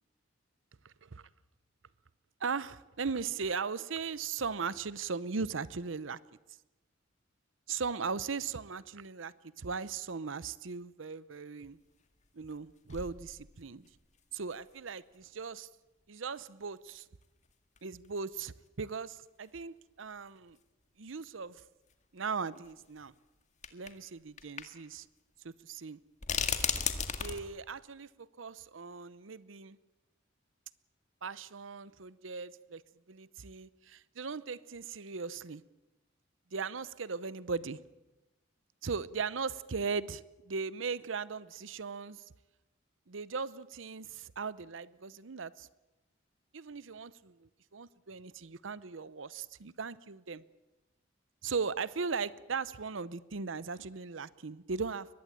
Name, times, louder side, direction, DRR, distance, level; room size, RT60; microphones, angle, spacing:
voice 1, 0.8-1.2 2.4-6.2 7.7-11.8 12.3-13.8 14.3-15.7 16.1-17.0 17.8-20.6 21.0-21.6 22.1-23.1 23.7-25.1 25.4-26.0 27.2-29.8 31.2-32.8 33.1-35.6 36.5-37.8 38.8-42.2 43.1-45.7 46.5-50.4 51.4-55.1, right 5 dB, 80° right, 0.8 m, -38 dB
sound 1, 11.7-11.8 12.5-12.6 12.9-13.9 14.5-14.6 16.4-16.5 17.8-17.9 18.0-18.1 19.2-19.3 19.6-19.7 21.1-21.2 22.7-22.8 23.6-24.0 24.4-24.6 24.9-25.0 26.2-27.4, left 7 dB, 40° left, 1.9 m, -34 dB
23.0 x 19.5 x 8.8 m
head